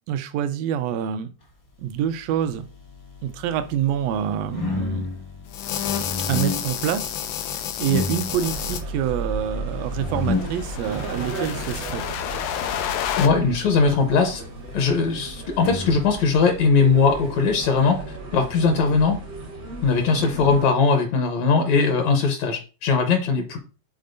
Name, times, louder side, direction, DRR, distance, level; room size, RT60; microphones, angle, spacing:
voice 1, 0.1-1.3 1.8-2.7 3.2-5.1 6.3-7.2 7.5-12.0 20.2-20.6, right 9 dB, 80° right, 11 dB, 1.6 m, -26 dB
sound 1, 2.2-17.6, left 3 dB, 30° left, 0.8 m, -34 dB
sound 2, 5.5-8.8 9.9-13.3, left 10 dB, 90° left, 2.1 m, -30 dB
sound 3, 8.3-20.7, right 2 dB, 55° right, 0.9 m, -35 dB
voice 2, 13.2-14.4 14.7-18.0 18.3-19.2 19.8-23.6, left 4 dB, 70° left, 5 dB, 2.1 m, -20 dB
10.5 x 4.2 x 2.6 m, 0.35 s
omnidirectional pair, 3.5 m